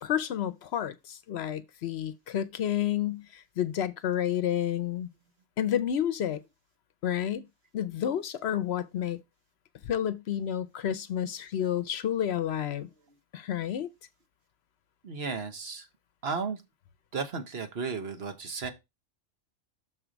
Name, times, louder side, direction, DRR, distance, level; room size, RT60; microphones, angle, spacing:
voice 1, 0.0-5.1 5.6-6.4 7.0-7.4 7.7-9.2 9.8-12.9 13.3-13.9, left 10 dB, 65° left, 0.8 m, -30 dB
voice 2, 15.0-15.9 16.2-16.6 17.1-18.7, right 5 dB, 55° right, 1.3 m, -34 dB
6.5 x 4.5 x 5.0 m
omnidirectional pair, 1.2 m